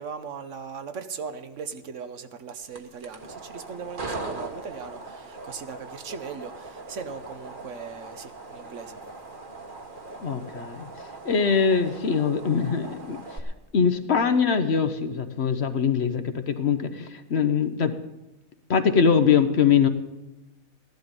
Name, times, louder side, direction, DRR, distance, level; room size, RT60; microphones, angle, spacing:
voice 1, 0.0-9.0, right 6 dB, 65° right, 9 dB, 1.2 m, -38 dB
sound 1, 2.6-13.4, right 3 dB, 40° right, 1.5 m, -40 dB
voice 2, 10.2-10.9 11.2-13.4 13.7-18.0 18.7-19.9, left 6 dB, 55° left, 9 dB, 1.1 m, -22 dB
15.5 x 12.0 x 5.3 m, 0.97 s
omnidirectional pair, 1.5 m